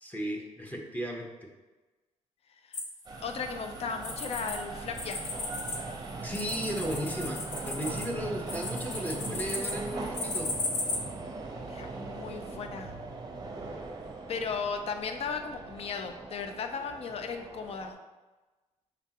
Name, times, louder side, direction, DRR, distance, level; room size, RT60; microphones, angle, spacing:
voice 1, 0.0-1.5 6.2-10.5, equal, 10° left, 0 dB, 0.8 m, -35 dB
sound 1, 2.7-4.6 4.9-11.0, left 2 dB, 75° left, 0.8 m, -36 dB
sound 2, 3.1-17.9, right 3 dB, 30° right, 0.6 m, -40 dB
voice 2, 3.2-5.2 11.7-12.9 14.3-17.9, left 5 dB, 50° left, 6 dB, 0.5 m, -36 dB
4.9 x 3.4 x 2.9 m, 1.2 s
cardioid pair, 100°, 13 cm